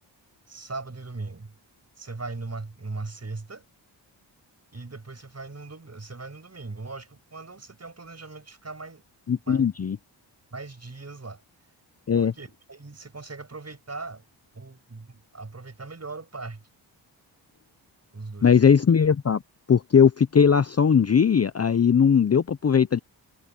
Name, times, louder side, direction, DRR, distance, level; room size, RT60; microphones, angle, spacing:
voice 1, 0.5-1.5 2.0-3.6 4.7-9.0 9.5-9.7 10.5-11.4 12.1-14.2 14.5-16.6 18.1-18.5, right 3 dB, 30° right, 7.7 m, -39 dB
voice 2, 9.3-10.0 12.1-12.3 18.4-19.4 19.7-23.0, left 7 dB, 30° left, 0.7 m, -19 dB
cardioid pair, 55°, 48 cm